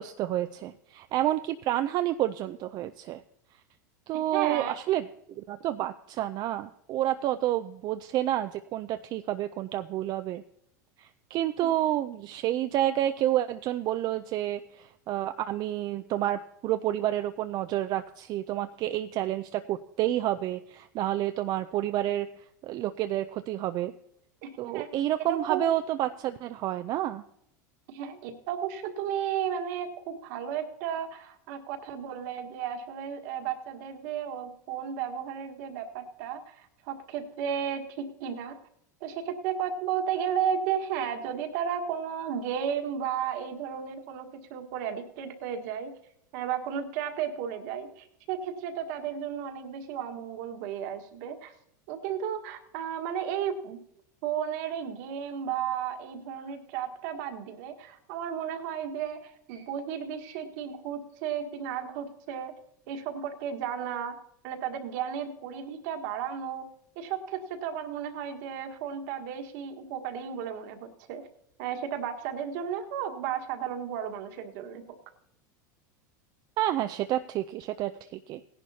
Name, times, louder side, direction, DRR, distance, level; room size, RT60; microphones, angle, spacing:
voice 1, 0.0-3.2 4.1-5.0 5.4-10.4 11.0-22.3 22.6-23.9 24.6-27.2 76.6-78.4, right 13 dB, 45° right, 8 dB, 0.5 m, -29 dB
voice 2, 4.3-4.8 24.4-24.9 25.3-25.7 27.9-38.6 39.0-45.9 46.3-51.5 51.9-53.8 54.2-62.5 62.9-64.1 64.4-66.6 66.9-71.3 71.6-74.8, right 8 dB, 65° right, 6 dB, 1.6 m, -33 dB
17.5 x 11.0 x 2.8 m, 0.76 s
hypercardioid pair, 105°, 10 cm